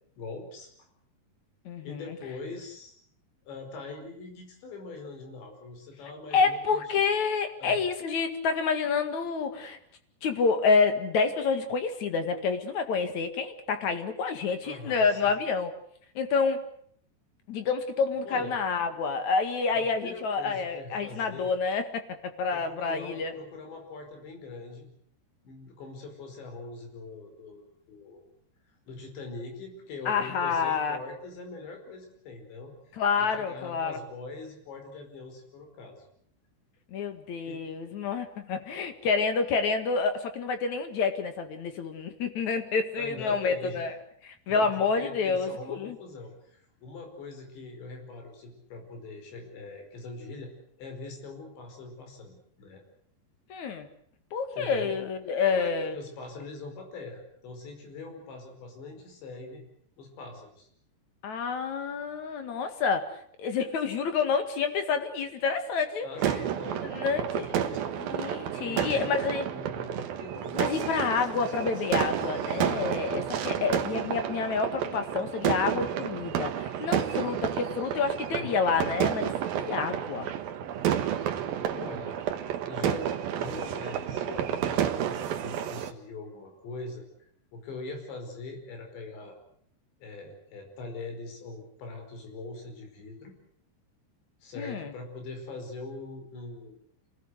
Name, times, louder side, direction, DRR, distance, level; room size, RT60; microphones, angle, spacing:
voice 1, 0.2-0.7 1.8-3.0 3.5-6.8 7.6-7.9 14.6-15.3 18.3-18.5 19.7-21.5 22.5-24.9 25.4-27.6 27.9-28.2 28.9-32.7 33.2-36.1 37.5-37.6 43.0-43.8 44.5-50.5 50.8-52.8 54.6-54.9 55.5-59.6 60.0-60.7 66.0-67.8 68.6-71.8 76.8-77.3 78.3-78.6 81.7-82.2 82.7-87.0 87.5-89.4 90.0-93.4 94.4-96.7, left 3 dB, 75° left, 4 dB, 7.2 m, -42 dB
voice 2, 1.6-2.2 6.3-9.8 10.2-15.7 16.1-16.6 17.5-23.3 30.1-31.0 33.0-34.0 36.9-43.9 44.2-46.0 53.5-53.9 54.3-55.9 61.2-66.4 66.8-67.5 68.0-69.5 70.5-80.3 94.6-94.9, left 5 dB, 50° left, 8 dB, 2.7 m, -28 dB
sound 1, 66.2-85.9, right 10 dB, 65° right, 2.9 m, -31 dB
27.0 x 19.5 x 8.1 m, 0.65 s
omnidirectional pair, 5.1 m